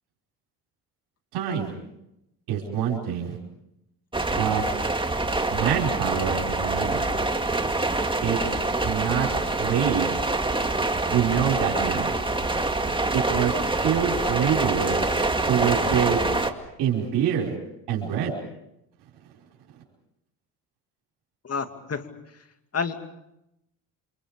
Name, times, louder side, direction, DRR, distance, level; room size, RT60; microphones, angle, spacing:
voice 1, 1.3-1.7 2.5-3.4 4.3-4.6 5.5-7.0 8.2-8.6 8.8-9.3 9.6-10.1 11.1-12.1 13.1-15.0 15.5-16.2 16.8-17.5 17.9-18.3, right 8 dB, 90° right, -2 dB, 5.3 m, -25 dB
sound 1, 4.1-16.5, right 2 dB, 15° right, 2.2 m, -25 dB
voice 2, 21.4-22.1 22.7-23.2, left 5 dB, 40° left, 7 dB, 2.5 m, -30 dB
29.0 x 27.0 x 5.2 m, 0.84 s
cardioid pair, 80°, 39 cm